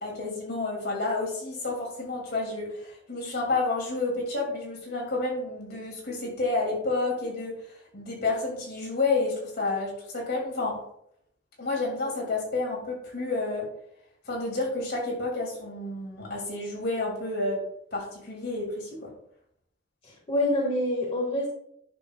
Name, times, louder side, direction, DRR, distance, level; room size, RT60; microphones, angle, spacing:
voice 1, 0.0-7.5 7.9-10.8 11.6-13.7 14.3-17.6 17.9-19.1, left 3 dB, 55° left, -2 dB, 2.7 m, -30 dB
voice 2, 20.0-21.5, left 1 dB, 30° left, -4 dB, 1.7 m, -26 dB
10.5 x 6.3 x 2.4 m, 0.72 s
head